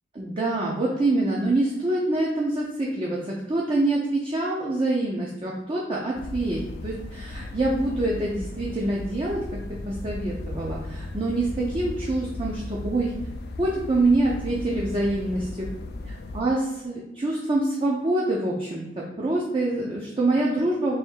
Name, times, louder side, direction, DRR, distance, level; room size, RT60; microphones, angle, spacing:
voice 1, 0.1-3.2 3.5-9.4 9.9-13.1 13.6-15.7 16.3-21.0, right 2 dB, 30° right, -3 dB, 0.5 m, -25 dB
sound 1, 6.1-16.4, left 2 dB, 60° left, 0.4 m, -36 dB
3.4 x 2.7 x 4.4 m, 0.97 s
head